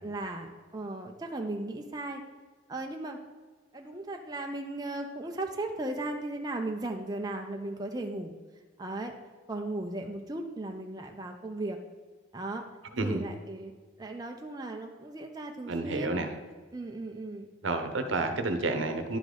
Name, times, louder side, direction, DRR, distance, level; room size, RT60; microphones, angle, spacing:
voice 1, 0.0-2.2 2.7-3.2 3.7-8.3 8.8-9.1 9.5-11.8 12.3-12.6 13.0-13.7 14.0-16.3 16.7-17.5, right 2 dB, 20° right, 2 dB, 0.5 m, -36 dB
voice 2, 15.7-16.3 17.6-19.2, right 2 dB, 75° right, 7 dB, 0.8 m, -30 dB
10.5 x 3.9 x 5.0 m, 1.4 s
head